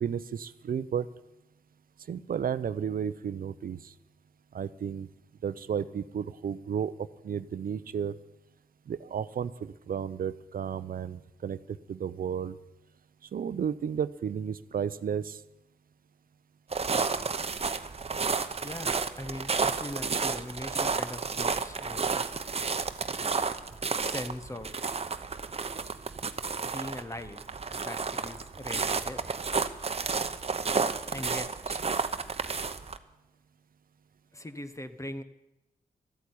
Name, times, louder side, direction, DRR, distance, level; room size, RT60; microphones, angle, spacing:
voice 1, 0.0-1.1 2.1-3.9 4.5-5.1 5.4-8.2 8.9-12.6 13.3-15.4, right 8 dB, 60° right, 16 dB, 0.6 m, -33 dB
sound 1, 16.7-33.0, right 5 dB, 40° right, 0.9 m, -31 dB
voice 2, 18.6-22.3 24.0-24.9 26.6-27.4 27.8-29.2 31.1-31.8 34.3-35.2, left 1 dB, 20° left, 10 dB, 1.0 m, -40 dB
13.0 x 8.4 x 9.7 m, 0.92 s
cardioid pair, 65°, 16 cm